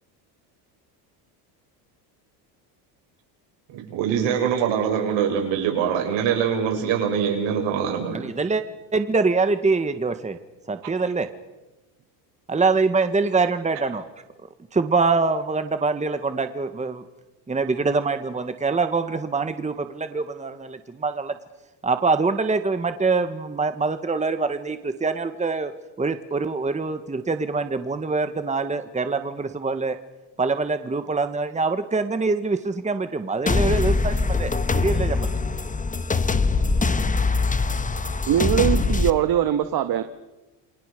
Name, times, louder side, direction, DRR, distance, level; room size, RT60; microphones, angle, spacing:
voice 1, 3.7-8.3 10.8-10.9, right 8 dB, 70° right, 7.4 m, -24 dB
voice 2, 8.1-8.6 8.9-10.4 10.7-11.3 12.5-14.0 14.7-17.0 17.5-21.3 21.8-25.7 26.0-30.0 30.4-35.3, right 4 dB, 15° right, 1.7 m, -24 dB
sound 1, 33.5-39.1, left 3 dB, 15° left, 1.4 m, -22 dB
voice 3, 38.3-40.0, right 11 dB, 50° right, 1.7 m, -21 dB
29.0 x 20.5 x 6.9 m
supercardioid pair, 95°, 46 cm